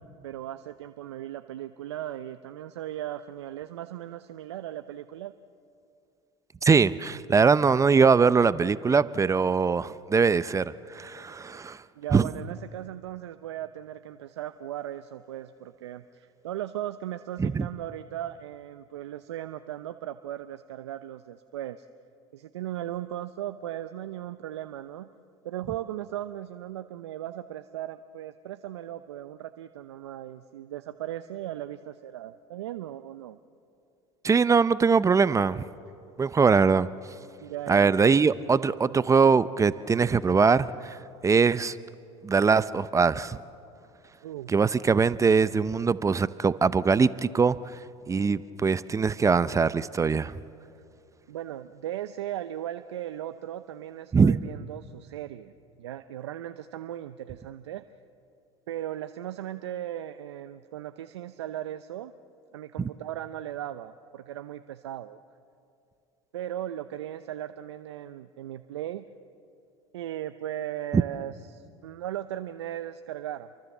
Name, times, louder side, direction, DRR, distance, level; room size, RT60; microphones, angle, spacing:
voice 1, 0.2-5.3 12.0-21.9 22.3-25.1 25.4-33.4 37.4-38.2 44.2-44.5 51.3-55.5 55.8-57.8 58.7-62.1 62.5-65.2 66.3-69.0 69.9-73.5, right 12 dB, 85° right, 10 dB, 0.7 m, -37 dB
voice 2, 6.6-11.8 12.1-12.3 17.4-17.7 34.2-35.6 36.2-36.9 37.7-41.0 41.2-41.8 42.2-43.4 44.5-47.6 48.1-50.3 54.1-54.4 62.8-62.9 70.9-71.0, right 5 dB, 20° right, 16 dB, 0.7 m, -22 dB
30.0 x 24.0 x 7.3 m, 2.6 s
hypercardioid pair, 80°, 14 cm